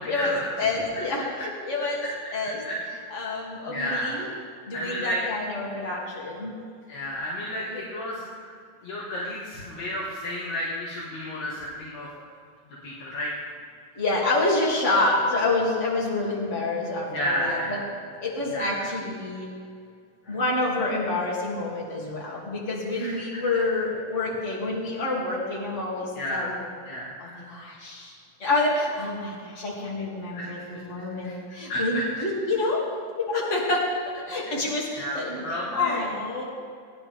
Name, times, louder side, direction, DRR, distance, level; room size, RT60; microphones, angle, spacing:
voice 1, 0.0-0.5 2.0-2.1 2.6-3.1 3.7-4.4 4.7-5.2 6.9-8.5 8.8-12.1 12.8-13.5 17.1-17.9 18.5-18.9 20.2-20.4 23.0-23.2 26.2-26.6 26.9-27.5 30.3-30.6 31.0-31.4 31.7-32.0 34.4-34.5 34.9-36.0, equal, 55° left, -6 dB, 2.3 m, -32 dB
voice 2, 0.6-2.0 2.3-2.6 3.1-4.3 4.7-6.5 7.7-7.8 14.0-17.8 18.2-19.5 20.3-26.5 27.2-32.8 33.2-33.9 34.1-35.4 35.7-36.4, left 2 dB, 20° left, -4 dB, 2.0 m, -28 dB
20.5 x 11.0 x 3.6 m, 2.3 s
omnidirectional pair, 5.1 m